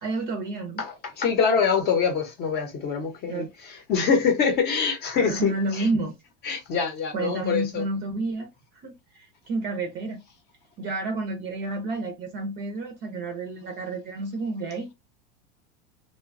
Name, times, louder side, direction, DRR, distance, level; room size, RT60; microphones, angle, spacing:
voice 1, 0.0-0.8 3.3-3.5 5.2-6.2 7.1-8.5 8.8-10.2 10.8-14.9, right 2 dB, 30° right, 0.6 m, -30 dB
voice 2, 0.8-5.9 6.4-7.8, left 6 dB, 30° left, 0.8 m, -25 dB
2.9 x 2.2 x 2.5 m
supercardioid pair, 145°, 33 cm